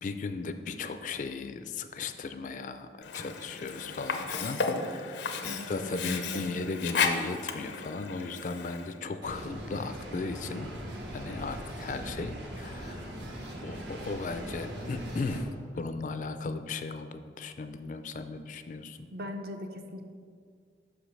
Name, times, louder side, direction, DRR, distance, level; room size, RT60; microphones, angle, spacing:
voice 1, 0.0-10.7 11.1-13.1 13.6-15.5 15.7-19.0, left 3 dB, 45° left, 9 dB, 0.3 m, -36 dB
Sink (filling or washing), 3.0-9.0, left 5 dB, 85° left, 0.6 m, -34 dB
voice 2, 5.5-6.4 19.1-20.0, left 1 dB, 55° right, 5 dB, 0.6 m, -40 dB
sound 1, 9.2-15.4, equal, 85° right, 1.2 m, -40 dB
5.8 x 5.1 x 6.0 m, 2.1 s
head